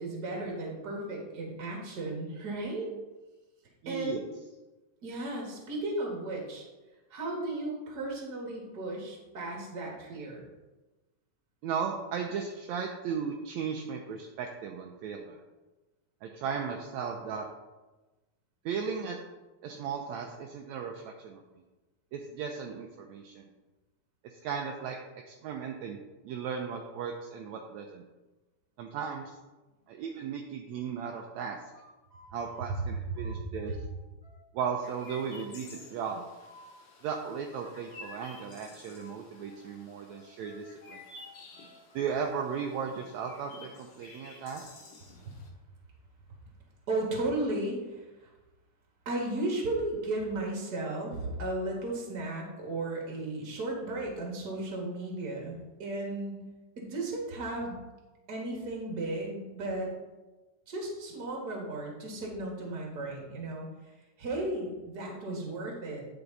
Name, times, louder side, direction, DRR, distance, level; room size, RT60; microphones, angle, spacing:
voice 1, 0.0-3.0 3.9-4.2 5.0-6.6 7.1-10.4 33.2-33.4 46.9-48.3 49.1-56.3 56.8-57.8 58.3-59.9 60.7-63.7 64.2-66.0, right 2 dB, 35° right, -1 dB, 2.1 m, -35 dB
voice 2, 3.8-4.2 11.6-15.4 16.2-17.5 18.7-19.2 19.6-21.4 22.1-23.5 24.2-25.0 25.3-26.0 26.2-28.0 28.8-29.4 29.9-31.6 32.3-33.8 34.5-36.2 37.0-41.0 41.9-44.7, right 6 dB, 75° right, 2 dB, 1.8 m, -36 dB
sound 1, 31.4-33.9 34.2-36.8 37.2-39.7 40.1-42.7, left 1 dB, 15° left, 1.4 m, -56 dB
Chirp tweet, 34.8-45.5, left 3 dB, 85° left, 3.0 m, -52 dB
10.5 x 5.9 x 4.0 m, 1.1 s
omnidirectional pair, 3.6 m